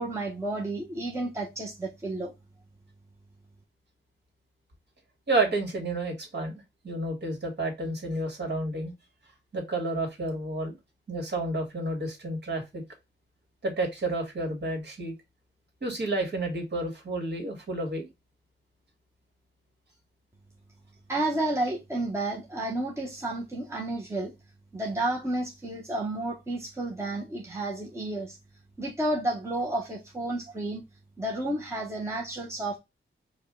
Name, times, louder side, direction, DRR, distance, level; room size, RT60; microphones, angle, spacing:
voice 1, 0.0-2.3 21.1-24.3 24.7-28.4 28.8-30.8 31.2-32.8, right 2 dB, 15° right, 1.0 m, -31 dB
voice 2, 5.3-8.9 9.5-10.8 11.1-12.8 13.6-15.1 15.8-18.1, right 2 dB, 55° right, 1.9 m, -30 dB
4.9 x 2.3 x 3.7 m
wide cardioid pair, 115°, 21 cm